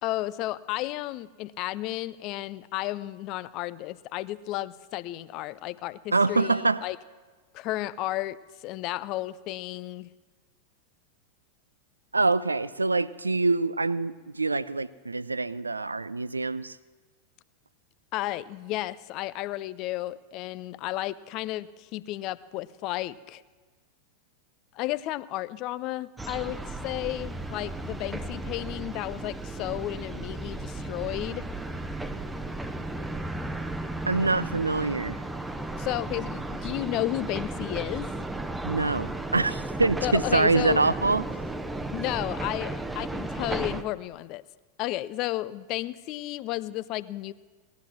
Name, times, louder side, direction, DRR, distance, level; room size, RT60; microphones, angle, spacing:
voice 1, 0.0-7.0 7.5-10.1 18.1-23.4 24.7-31.5 35.8-38.1 40.0-40.8 41.9-44.4 44.8-47.3, left 16 dB, 40° left, 17 dB, 0.4 m, -33 dB
voice 2, 6.1-6.8 12.1-16.8 34.0-35.2 38.6-41.3, right 3 dB, 80° right, 18 dB, 0.4 m, -25 dB
sound 1, 26.2-43.8, right 2 dB, 5° right, 0.8 m, -34 dB
18.0 x 12.5 x 6.0 m, 1.4 s
figure-of-eight pair, 90°, 0 cm